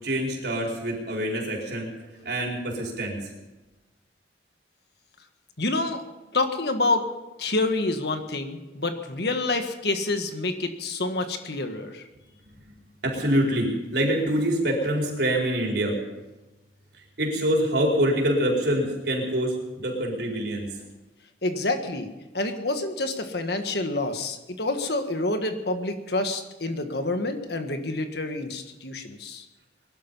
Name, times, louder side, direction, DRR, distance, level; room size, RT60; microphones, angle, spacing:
voice 1, 0.0-1.9 2.2-3.2 13.0-16.0 17.2-20.7, right 1 dB, 60° right, -1 dB, 4.6 m, -25 dB
voice 2, 5.6-6.0 6.3-7.1 7.4-12.1 21.4-22.1 22.3-29.5, left 2 dB, 60° left, 7 dB, 1.6 m, -28 dB
21.5 x 12.0 x 5.6 m, 1.1 s
head